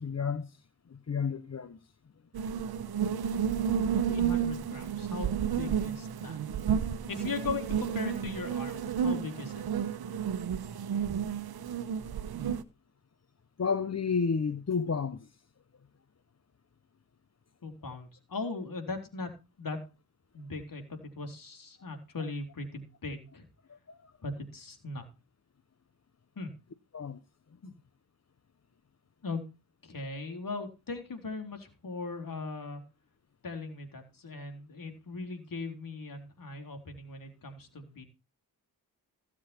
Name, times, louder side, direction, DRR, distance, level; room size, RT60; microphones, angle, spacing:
voice 1, 0.0-1.8 13.6-15.4 23.7-24.1 26.9-27.2, left 5 dB, 40° left, 1.1 m, -32 dB
sound 1, 2.3-12.6, right 8 dB, 75° right, 1.1 m, -31 dB
voice 2, 4.1-6.4 7.1-9.6 17.6-19.3 19.6-19.8 20.3-23.5 24.2-25.0 26.4-26.5 27.6-27.7 29.2-29.4 29.8-32.8 33.4-38.0, left 3 dB, 60° left, 4.0 m, -39 dB
16.0 x 7.4 x 4.5 m
supercardioid pair, 45°, 38 cm